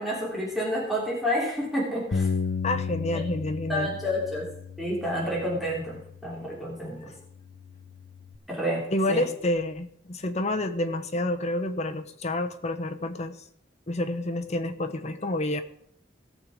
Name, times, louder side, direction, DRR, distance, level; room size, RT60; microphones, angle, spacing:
voice 1, 0.0-2.3 3.1-3.2 3.7-4.5 4.8-7.0 8.5-8.8 9.1-9.2, equal, ahead, -5 dB, 3.3 m, -29 dB
Bass guitar, 2.1-6.6 7.2-8.4, left 5 dB, 65° left, 0.8 m, -34 dB
voice 2, 2.6-3.9 6.8-7.1 8.9-13.4 13.9-15.6, left 1 dB, 35° left, 7 dB, 1.0 m, -29 dB
18.0 x 6.9 x 4.9 m, 0.69 s
head